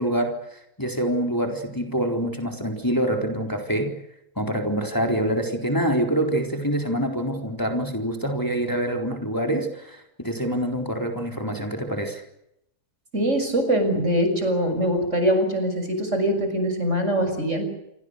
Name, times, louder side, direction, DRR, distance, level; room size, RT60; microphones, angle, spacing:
voice 1, 0.0-4.0 4.4-12.2, right 1 dB, 10° left, 3 dB, 4.0 m, -26 dB
voice 2, 13.1-17.6, equal, 50° right, 7 dB, 6.9 m, -23 dB
28.0 x 24.5 x 6.6 m, 0.80 s
omnidirectional pair, 1.6 m